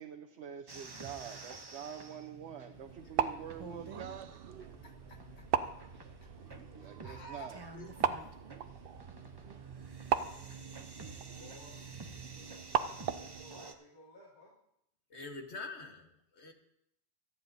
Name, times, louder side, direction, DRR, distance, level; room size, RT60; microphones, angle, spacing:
voice 1, 0.0-4.3 6.4-7.6, right 8 dB, 80° right, 5 dB, 1.0 m, -46 dB
sound 1, 0.7-13.7, right 4 dB, 25° right, 0.7 m, -50 dB
sound 2, 2.7-9.9, left 3 dB, 85° left, 4.5 m, -61 dB
sound 3, 2.9-13.4, right 8 dB, 60° right, 0.7 m, -38 dB
voice 2, 4.8-5.5 7.0-8.3 15.1-16.5, left 3 dB, 70° left, 4 dB, 1.6 m, -47 dB
voice 3, 11.3-11.8 12.8-14.6, left 1 dB, 40° left, -7 dB, 2.9 m, -56 dB
25.0 x 9.1 x 2.7 m, 0.76 s
omnidirectional pair, 1.2 m